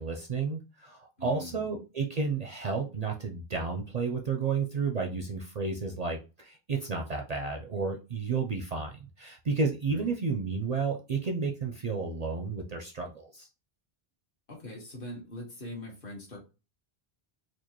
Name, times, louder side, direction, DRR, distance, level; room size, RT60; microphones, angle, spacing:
voice 1, 0.0-13.5, right 4 dB, 50° right, 2 dB, 0.5 m, -32 dB
voice 2, 1.2-1.7 9.8-10.1 14.5-16.4, equal, 60° left, -2 dB, 1.6 m, -42 dB
4.4 x 2.4 x 2.9 m, 0.30 s
omnidirectional pair, 1.1 m